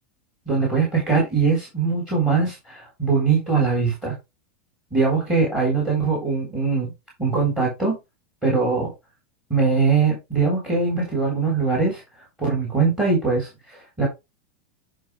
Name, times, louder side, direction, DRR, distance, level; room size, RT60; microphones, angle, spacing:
voice 1, 0.5-4.2 4.9-6.9 7.2-8.0 8.4-8.9 9.5-12.0 12.4-14.1, right 4 dB, 10° right, -3 dB, 3.8 m, -21 dB
10.5 x 4.5 x 3.2 m, 0.23 s
supercardioid pair, 155°, 6 cm